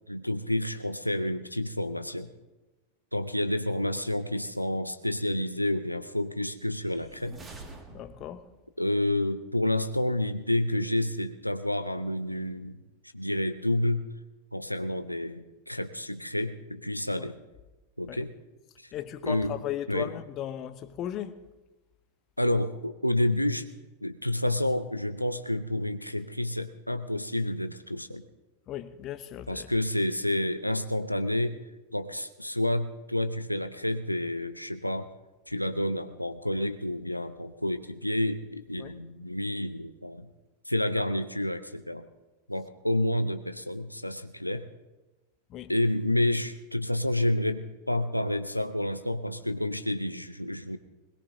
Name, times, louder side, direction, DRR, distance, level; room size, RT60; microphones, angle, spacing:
voice 1, 0.1-2.3 3.1-7.4 8.8-12.8 13.1-14.1 14.5-17.4 18.0-18.3 19.2-19.5 19.9-20.1 22.4-23.7 24.0-28.2 29.5-31.6 31.9-35.1 35.5-40.3 40.7-42.1 42.5-44.7 45.7-50.8, left 1 dB, 90° left, 0.6 m, -29 dB
sound 1, 6.8-8.6, right 3 dB, 20° right, 2.1 m, -47 dB
voice 2, 7.9-8.5 17.2-17.3 18.1-18.2 18.9-21.4 28.7-29.7 38.8-38.9 45.5-45.7, left 11 dB, 35° left, 0.7 m, -36 dB
21.5 x 20.5 x 2.8 m
figure-of-eight pair, 90°, 0 cm